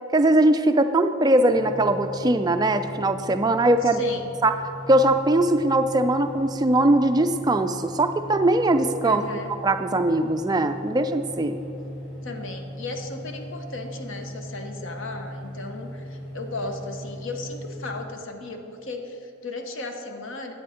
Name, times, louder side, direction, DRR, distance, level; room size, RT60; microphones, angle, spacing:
voice 1, 0.1-4.0 4.4-4.6 4.9-9.2 9.6-11.6, right 1 dB, 20° right, 7 dB, 0.3 m, -21 dB
sound 1, 1.5-18.0, equal, 90° left, 2.2 m, -38 dB
voice 2, 3.8-4.3 9.0-9.6 12.2-20.5, left 2 dB, 60° left, 5 dB, 0.9 m, -35 dB
10.0 x 7.8 x 5.0 m, 2.8 s
head